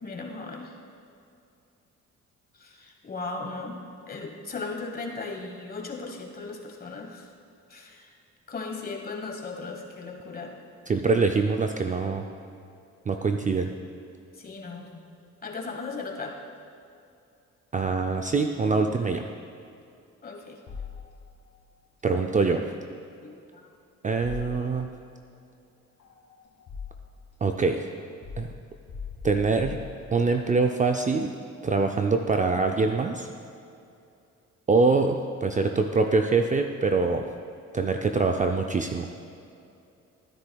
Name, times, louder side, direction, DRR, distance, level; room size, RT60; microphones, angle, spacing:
voice 1, 0.0-0.7 2.6-7.3 7.7-8.1 8.5-10.5 14.3-15.1 15.4-16.3 20.2-20.6 23.2-23.7, left 3 dB, 30° left, 2 dB, 1.3 m, -37 dB
voice 2, 10.9-12.3 13.1-13.7 17.7-19.2 22.0-22.6 24.0-24.9 27.4-27.8 28.4-28.5 29.2-29.8 30.1-31.4 31.6-33.3 34.7-37.2 37.7-39.1, right 4 dB, 25° right, 4 dB, 0.4 m, -24 dB
sound 1, 20.7-21.6 24.2-25.1 26.0-27.3 28.2-30.5, left 6 dB, 70° left, 2.4 m, -41 dB
13.0 x 9.7 x 2.3 m, 2.6 s
cardioid pair, 90°, 30 cm